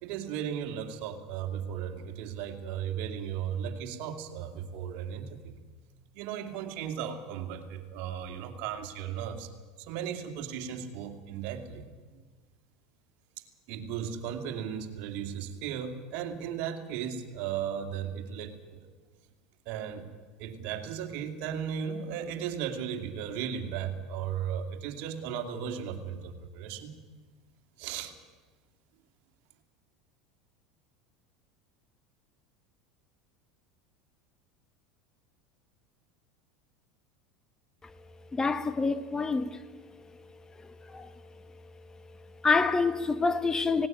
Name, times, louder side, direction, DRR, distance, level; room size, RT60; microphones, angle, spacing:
voice 1, 0.0-5.5 6.1-9.5 9.8-11.8 13.7-18.8 19.7-20.0 20.4-26.9 27.8-28.1, right 8 dB, 60° right, 2.5 m, -36 dB
voice 2, 38.3-39.6 40.9-41.1 42.4-43.9, left 4 dB, 20° left, 1.2 m, -26 dB
18.5 x 18.0 x 9.3 m
hypercardioid pair, 95°, 3 cm